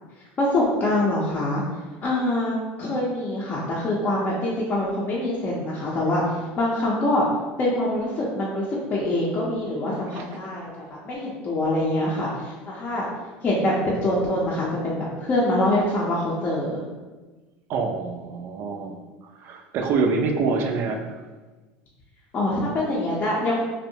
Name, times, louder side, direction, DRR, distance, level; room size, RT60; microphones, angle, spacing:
voice 1, 0.4-1.6 2.0-7.3 7.6-10.7 11.0-13.1 13.4-16.9 22.3-23.6, left 1 dB, 35° left, -6 dB, 0.5 m, -24 dB
voice 2, 17.7-19.0 19.4-21.2, right 4 dB, 50° right, 4 dB, 0.4 m, -25 dB
2.6 x 2.0 x 2.7 m, 1.2 s
supercardioid pair, 110°, 5 cm